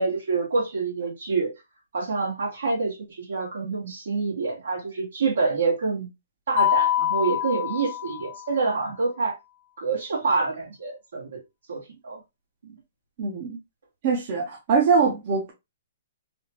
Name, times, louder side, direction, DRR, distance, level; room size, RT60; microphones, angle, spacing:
voice 1, 0.0-1.5 1.9-6.1 6.5-9.3 9.8-11.4 11.7-12.2 12.6-12.8, right 4 dB, 80° right, 1.7 m, -27 dB
Mallet percussion, 6.6-8.6, left 12 dB, 65° left, 0.7 m, -25 dB
voice 2, 13.2-13.6 14.0-15.5, right 5 dB, 45° right, 0.8 m, -22 dB
3.5 x 2.4 x 2.9 m
hypercardioid pair, 145°, 0 cm